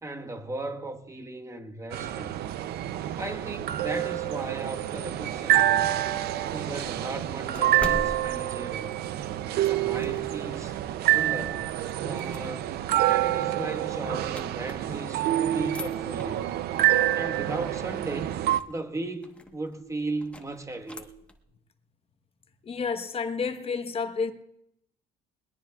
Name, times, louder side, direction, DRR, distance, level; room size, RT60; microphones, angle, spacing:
voice 1, 0.0-2.3 3.2-6.0 6.5-9.0 9.6-10.8 11.1-11.7 12.0-12.7 13.1-16.5 17.1-18.4 18.7-21.1, right 2 dB, 20° right, 1.3 m, -36 dB
sound 1, 1.9-18.6, right 13 dB, 70° right, 0.5 m, -27 dB
sound 2, 6.1-10.5 11.0-15.2 15.5-21.4, left 2 dB, 5° left, 1.1 m, -44 dB
voice 2, 22.6-24.3, left 5 dB, 35° left, 1.0 m, -30 dB
21.0 x 20.5 x 2.3 m
cardioid pair, 110°, 17 cm